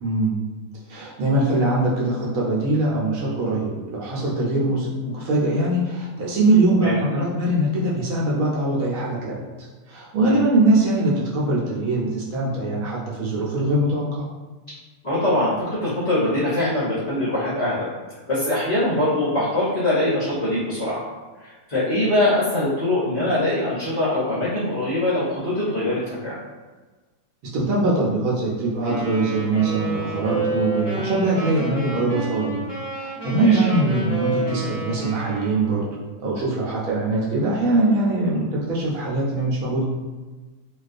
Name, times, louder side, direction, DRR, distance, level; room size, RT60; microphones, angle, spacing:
voice 1, 0.0-0.4 0.9-14.3 27.4-32.6 32.9-35.9 36.2-39.8, right 2 dB, 70° right, -5 dB, 0.9 m, -22 dB
voice 2, 15.0-17.9 18.3-21.0 21.4-26.4 33.3-33.7 38.3-38.4, left 1 dB, 50° left, -10 dB, 0.6 m, -23 dB
Wind instrument woodwind instrument, 28.8-35.8, right 2 dB, 25° right, 0.9 m, -30 dB
2.3 x 2.3 x 2.4 m, 1.3 s
omnidirectional pair, 1.6 m